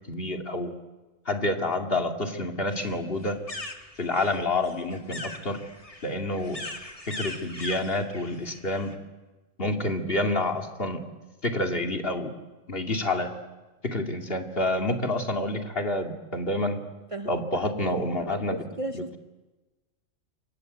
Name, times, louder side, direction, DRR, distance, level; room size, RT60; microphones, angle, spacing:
voice 1, 0.1-0.7 1.3-3.4 4.0-5.6 6.0-6.6 7.1-8.9 9.6-11.0 11.4-12.3 12.7-13.3 13.8-16.8 17.3-18.6 18.9-19.0, left 2 dB, 45° left, 3 dB, 2.7 m, -28 dB
sound 1, 2.7-9.0, left 2 dB, 25° left, 2.4 m, -41 dB
voice 2, 17.1-19.2, right 1 dB, 25° right, 6 dB, 1.1 m, -36 dB
28.5 x 24.5 x 8.2 m, 1.2 s
omnidirectional pair, 1.4 m